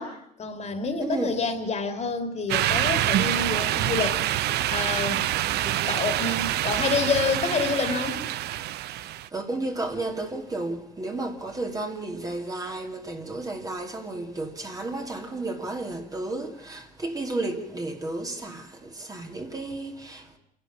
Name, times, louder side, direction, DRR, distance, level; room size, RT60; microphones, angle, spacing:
voice 1, 0.0-4.2 4.7-5.3 5.9-8.2, left 4 dB, 40° left, 2.8 m, -28 dB
voice 2, 1.0-1.4 5.5-6.1 8.9-20.4, right 2 dB, 20° right, 2.6 m, -33 dB
sound 1, 2.5-9.3, right 14 dB, 75° right, 0.7 m, -26 dB
27.5 x 11.5 x 8.7 m
cardioid pair, 110°, 17 cm